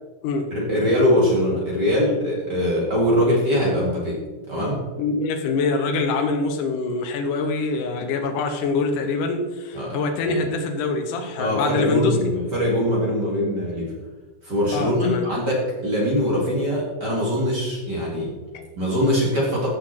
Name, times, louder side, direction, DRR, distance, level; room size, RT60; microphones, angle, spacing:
voice 1, 0.5-4.8 9.7-10.0 10.2-10.4 11.4-13.9 14.4-18.3 18.8-19.7, equal, 35° right, -4 dB, 2.0 m, -22 dB
voice 2, 5.0-12.2 14.7-15.2 18.5-18.6, left 3 dB, 85° left, 5 dB, 1.8 m, -24 dB
15.0 x 6.0 x 4.4 m, 1.2 s
omnidirectional pair, 4.9 m